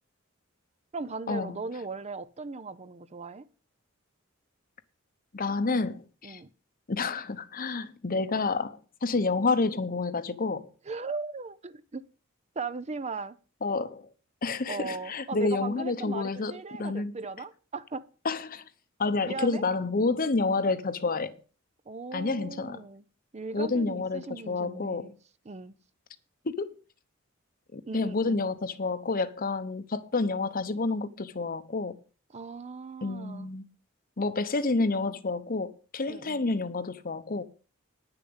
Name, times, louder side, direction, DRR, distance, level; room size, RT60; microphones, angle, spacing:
voice 1, 0.9-3.5 6.2-6.5 10.9-12.0 12.6-13.4 14.7-18.1 19.2-19.6 21.9-23.0 23.3-25.2 25.5-25.7 27.9-28.4 32.3-33.5 36.1-36.4, right 4 dB, 35° right, 0.6 m, -38 dB
voice 2, 5.3-6.4 6.9-10.7 13.6-14.1 14.4-17.1 18.2-18.6 19.0-21.4 22.1-22.8 23.5-25.1 26.4-26.7 27.7-32.0 33.0-33.7 34.2-37.4, left 3 dB, 45° left, 0.9 m, -29 dB
9.9 x 6.9 x 7.9 m
head